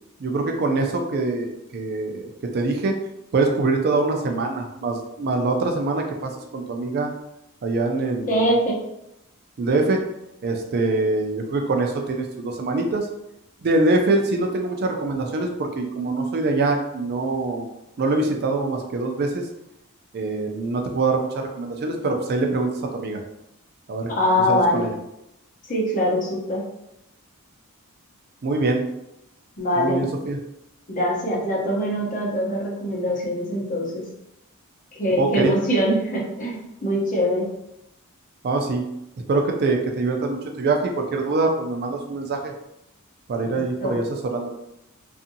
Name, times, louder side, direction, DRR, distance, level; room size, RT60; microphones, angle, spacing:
voice 1, 0.2-2.9 3.3-7.1 7.6-8.5 9.6-10.0 10.4-13.1 13.6-17.6 18.0-19.5 20.1-23.2 23.9-24.1 24.5-24.9 28.4-28.9 29.8-30.4 35.2-35.5 38.4-38.9 39.3-42.5 43.3-44.5, right 3 dB, 45° right, 3 dB, 0.4 m, -24 dB
voice 2, 8.1-8.8 24.1-24.9 25.7-26.6 29.6-30.0 30.9-34.0 35.0-37.5 43.4-44.0, equal, 35° left, -3 dB, 0.8 m, -23 dB
2.6 x 2.5 x 2.7 m, 0.84 s
head